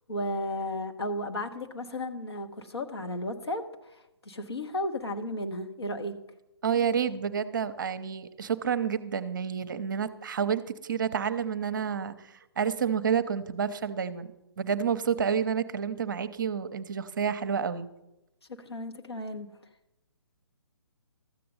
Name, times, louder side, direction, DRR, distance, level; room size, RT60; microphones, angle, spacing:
voice 1, 0.1-3.6 3.9-6.1 18.5-19.5, left 1 dB, 70° left, 4 dB, 1.3 m, -34 dB
voice 2, 6.6-17.9, right 7 dB, 45° right, 12 dB, 0.7 m, -29 dB
13.5 x 7.6 x 5.4 m, 0.90 s
figure-of-eight pair, 135°, 14 cm